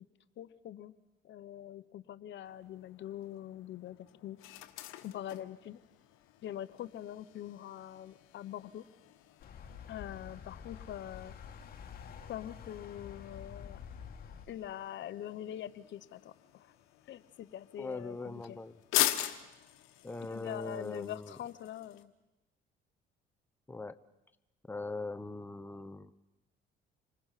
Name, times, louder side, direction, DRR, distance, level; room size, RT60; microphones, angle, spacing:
voice 1, 0.4-0.9 1.2-4.4 5.0-5.8 6.4-8.8 9.9-11.3 12.3-13.8 14.5-16.7 17.1-18.6 20.3-22.1, left 11 dB, 65° left, 14 dB, 0.9 m, -44 dB
sound 1, 2.4-22.0, left 14 dB, 90° left, 1.3 m, -42 dB
sound 2, 9.4-14.4, left 7 dB, 50° left, 2.6 m, -48 dB
voice 2, 17.8-18.8 20.0-21.4 23.7-24.0 24.7-26.1, left 3 dB, 10° left, 11 dB, 0.9 m, -41 dB
27.5 x 20.0 x 5.7 m, 0.99 s
cardioid pair, 90°, 21 cm